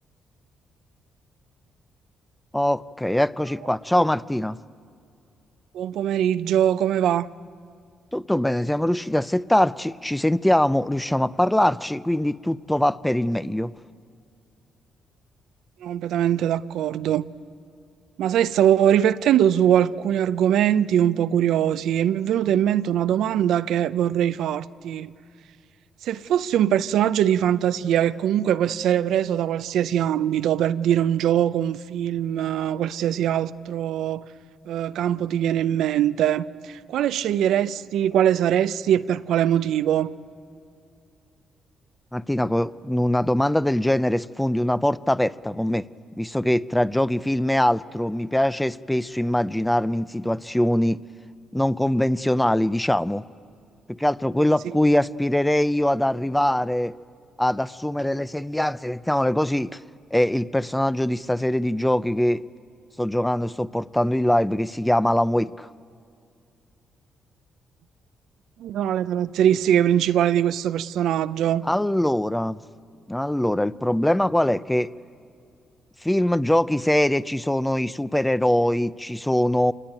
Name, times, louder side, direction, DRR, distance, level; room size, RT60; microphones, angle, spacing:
voice 1, 2.5-4.6 8.1-13.7 42.1-45.9 46.2-51.0 51.5-53.2 53.9-56.9 57.4-59.8 60.1-62.4 63.0-65.7 71.6-72.6 73.1-74.9 76.0-79.7, left 1 dB, 5° left, 0.5 m, -22 dB
voice 2, 5.7-7.3 15.8-17.2 18.2-25.1 26.0-34.2 34.7-40.1 68.6-71.6, right 10 dB, 80° right, 0.6 m, -22 dB
27.0 x 21.0 x 9.0 m
cardioid pair, 90°, 0 cm